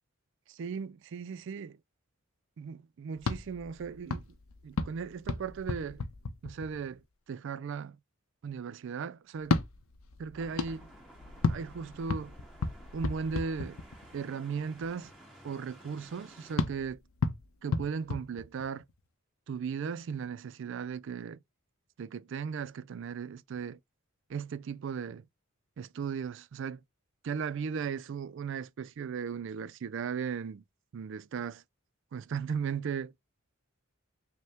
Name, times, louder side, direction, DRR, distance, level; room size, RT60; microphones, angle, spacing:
voice 1, 0.5-1.8 2.6-4.3 4.6-6.0 6.4-7.0 7.3-8.0 8.4-9.6 10.2-10.9 11.5-12.4 12.9-13.8 14.1-15.1 15.4-17.0 17.6-18.8 19.5-21.4 22.0-23.8 24.3-25.2 25.8-26.8 27.2-30.6 30.9-31.6 32.1-33.1, right 6 dB, 60° right, 0.3 m, -37 dB
sound 1, 3.2-7.0 9.4-14.2 16.6-19.0, left 3 dB, 80° left, 0.6 m, -34 dB
sound 2, 10.4-16.6, right 1 dB, 5° right, 1.5 m, -54 dB
5.3 x 2.1 x 3.4 m
head